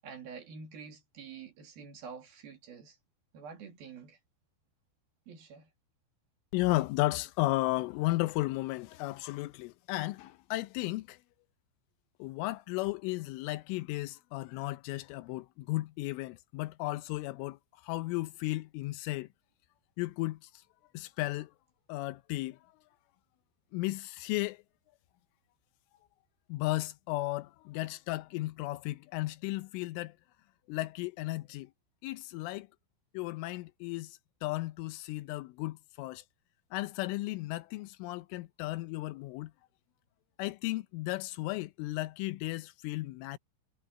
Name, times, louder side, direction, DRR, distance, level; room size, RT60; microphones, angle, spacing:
voice 1, 0.0-3.0 3.3-4.2 5.3-5.7, right 5 dB, 55° right, 3.9 m, -47 dB
voice 2, 6.5-11.2 12.2-17.6 17.8-19.3 20.0-20.4 20.9-21.5 21.9-22.6 23.7-24.6 26.5-30.2 30.7-31.7 32.0-32.7 33.1-36.2 36.7-39.5 40.4-43.4, left 19 dB, 80° left, 3.1 m, -34 dB
omnidirectional pair, 5.8 m